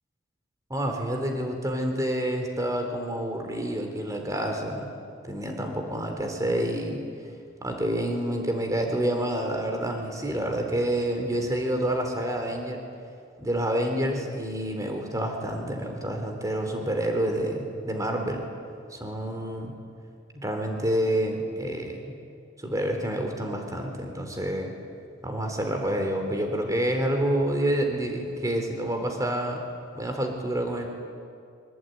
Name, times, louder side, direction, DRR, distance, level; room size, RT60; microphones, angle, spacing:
voice 1, 0.7-4.9 5.2-7.0 7.6-12.8 13.4-18.5 18.9-19.7 20.3-22.1 22.6-24.7 25.2-29.6 29.9-30.9, right 1 dB, 15° right, 3 dB, 3.6 m, -28 dB
25.0 x 25.0 x 9.4 m, 2.3 s
head